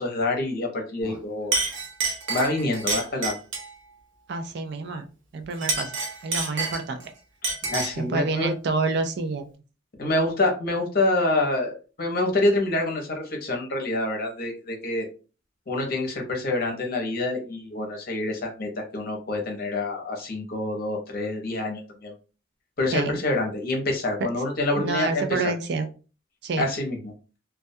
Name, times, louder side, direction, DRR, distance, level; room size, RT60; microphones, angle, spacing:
voice 1, 0.0-1.5 2.3-3.4 7.7-8.5 10.0-15.1 15.7-22.1 22.8-25.5 26.6-27.1, left 2 dB, 50° left, 1 dB, 0.7 m, -26 dB
Chink clink, 1.0-1.2 1.5-3.7 5.5-7.1 7.4-8.0, right 3 dB, 75° right, 0.8 m, -28 dB
voice 2, 4.3-5.0 5.3-5.9 6.2-7.1 8.0-9.5 22.9-23.2 24.8-25.9 26.4-26.7, right 3 dB, 55° right, 8 dB, 0.4 m, -28 dB
2.2 x 2.2 x 2.6 m, 0.34 s
head